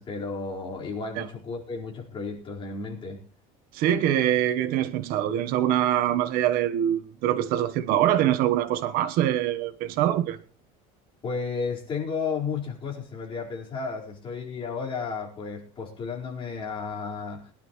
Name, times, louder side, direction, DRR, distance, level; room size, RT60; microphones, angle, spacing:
voice 1, 0.0-3.2 11.2-17.5, left 5 dB, 30° left, 4.6 m, -33 dB
voice 2, 3.7-10.4, right 11 dB, 65° right, 1.2 m, -24 dB
22.5 x 11.5 x 3.2 m
cardioid pair, 145°, 16 cm